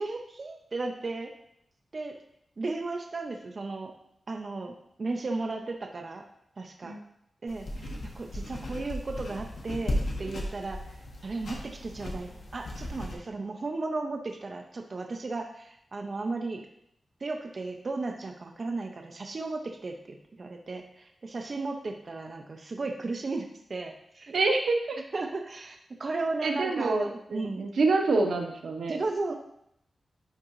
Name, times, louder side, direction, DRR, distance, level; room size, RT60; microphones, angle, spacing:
voice 1, 0.0-1.3 1.9-2.2 2.6-3.9 4.3-6.2 6.6-7.0 7.4-11.0 11.2-16.7 17.2-24.3 25.1-27.7 28.9-29.3, right 3 dB, 40° right, 3 dB, 0.5 m, -35 dB
sound 1, 7.5-13.1, left 1 dB, 70° left, 1.3 m, -36 dB
voice 2, 24.3-25.0 26.4-29.0, right 3 dB, 90° right, 3 dB, 0.9 m, -27 dB
11.0 x 3.8 x 3.0 m, 0.74 s
wide cardioid pair, 170°, 0 cm